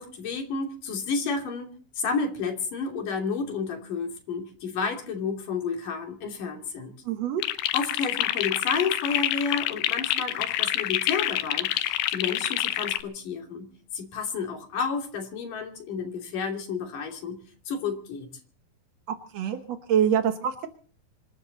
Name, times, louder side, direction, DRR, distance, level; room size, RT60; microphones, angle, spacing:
voice 1, 0.0-1.7 2.0-6.9 7.7-17.4 17.7-18.3, left 5 dB, 55° left, 3 dB, 4.2 m, -31 dB
voice 2, 7.0-7.4 19.1-20.7, right 8 dB, 75° right, 8 dB, 1.5 m, -26 dB
sound 1, 7.4-13.0, left 14 dB, 75° left, 2.8 m, -27 dB
26.0 x 12.5 x 4.0 m, 0.42 s
omnidirectional pair, 4.8 m